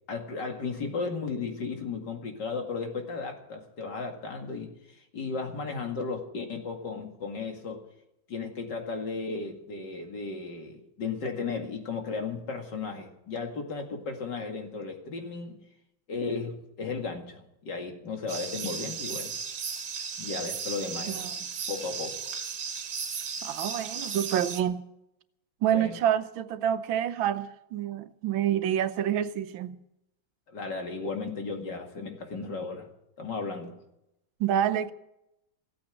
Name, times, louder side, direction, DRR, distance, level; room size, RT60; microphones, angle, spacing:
voice 1, 0.1-7.8 8.3-15.6 16.1-19.3 20.2-21.2 21.7-22.3 25.7-26.0 30.5-32.9 33.2-33.8, left 4 dB, 60° left, 2.8 m, -35 dB
sound 1, 18.3-24.6, right 6 dB, 65° right, 1.8 m, -35 dB
voice 2, 23.4-24.8 25.6-29.8 34.4-34.9, right 10 dB, 90° right, 1.6 m, -28 dB
15.5 x 8.8 x 9.0 m
omnidirectional pair, 2.1 m